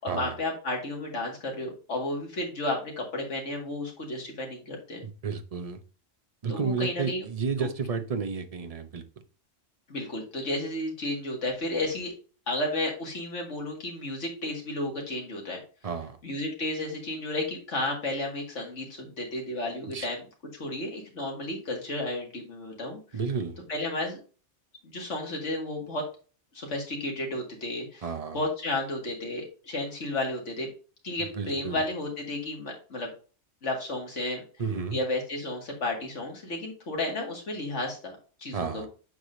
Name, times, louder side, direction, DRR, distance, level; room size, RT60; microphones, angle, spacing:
voice 1, 0.0-5.0 6.5-7.3 7.6-7.7 9.9-12.1 12.5-15.6 16.2-20.2 20.6-23.0 23.7-24.2 24.8-26.0 26.5-28.1 28.3-30.7 31.0-33.1 33.6-34.4 34.9-38.9, left 2 dB, 65° left, 1 dB, 2.3 m, -32 dB
voice 2, 5.0-5.8 6.4-9.0 15.8-16.2 19.9-20.1 23.1-23.6 28.0-28.4 31.2-31.8 34.6-35.0 38.5-38.9, right 5 dB, 35° right, 8 dB, 0.7 m, -32 dB
8.0 x 4.9 x 2.6 m, 0.36 s
omnidirectional pair, 1.3 m